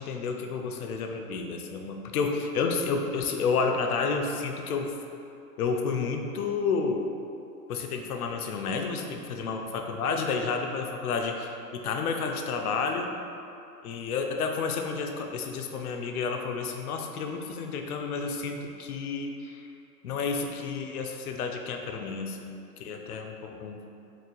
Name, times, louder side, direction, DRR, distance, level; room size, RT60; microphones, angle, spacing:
voice 1, 0.0-4.9 5.6-7.1 7.7-13.1 13.8-19.6 20.0-22.5 22.8-23.8, left 5 dB, 65° left, 4 dB, 0.6 m, -30 dB
4.5 x 3.2 x 2.2 m, 2.6 s
hypercardioid pair, 140°, 48 cm